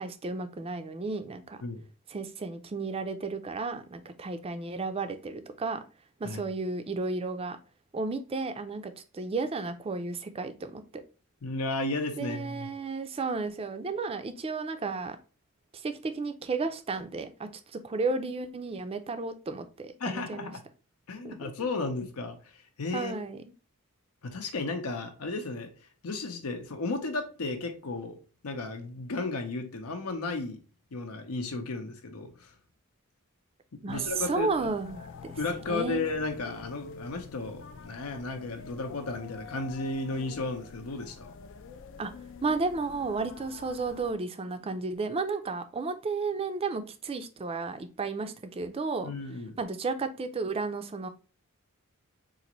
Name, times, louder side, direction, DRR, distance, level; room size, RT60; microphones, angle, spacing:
voice 1, 0.0-1.6 2.1-5.8 6.2-7.6 7.9-11.0 12.2-15.2 15.7-20.5 21.2-21.5 22.9-23.4 33.8-35.3 35.7-36.1 42.0-42.1 42.4-49.1 49.6-51.1, right 3 dB, 25° right, 0.4 m, -33 dB
voice 2, 11.4-12.7 20.0-20.6 21.1-23.1 24.2-28.2 28.4-30.6 30.9-32.5 33.9-34.7 35.4-41.3 49.0-49.6, left 3 dB, 85° left, 0.7 m, -34 dB
sound 1, 33.9-44.1, left 5 dB, 60° left, 0.3 m, -47 dB
4.0 x 2.5 x 2.9 m
head